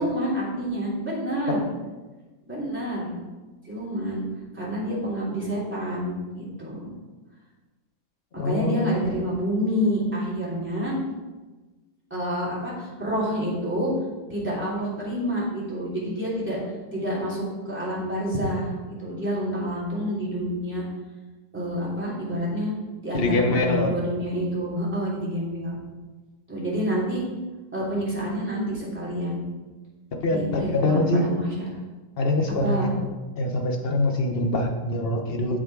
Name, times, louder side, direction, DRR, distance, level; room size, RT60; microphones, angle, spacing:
voice 1, 0.0-1.7 2.5-3.1 3.6-4.2 4.5-6.9 8.3-10.9 12.1-13.9 14.3-16.6 16.9-20.8 21.5-22.7 23.0-25.8 26.5-27.2 27.7-29.4 30.3-31.7 32.5-32.9, equal, 5° right, -8 dB, 2.9 m, -28 dB
voice 2, 8.4-9.1 23.1-24.0 30.1-31.3 32.2-33.0 33.4-35.6, left 2 dB, 40° left, 3 dB, 1.0 m, -24 dB
8.0 x 6.4 x 4.7 m, 1.2 s
omnidirectional pair, 1.8 m